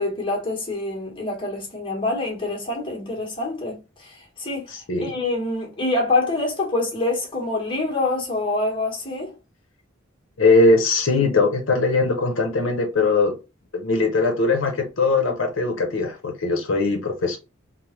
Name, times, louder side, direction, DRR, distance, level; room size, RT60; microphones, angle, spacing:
voice 1, 0.0-4.7 5.0-9.3, left 2 dB, 25° left, 1.1 m, -26 dB
voice 2, 4.7-5.1 10.4-13.3 13.7-17.4, left 3 dB, 80° left, 0.7 m, -20 dB
3.3 x 2.1 x 2.9 m
head